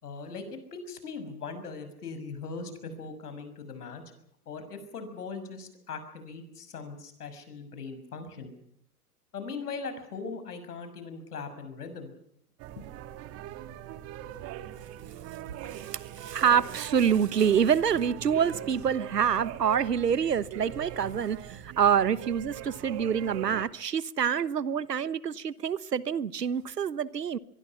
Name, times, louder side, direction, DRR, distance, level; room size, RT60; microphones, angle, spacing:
voice 1, 0.0-0.4 0.7-4.0 4.5-8.5 9.3-12.1 12.8-12.9, left 4 dB, 75° left, 6.1 m, -40 dB
sound 1, 12.6-23.6, right 12 dB, 30° right, 1.7 m, -41 dB
voice 2, 15.6-27.4, right 7 dB, 85° right, 1.2 m, -26 dB
25.0 x 23.0 x 5.8 m
hypercardioid pair, 115°, 47 cm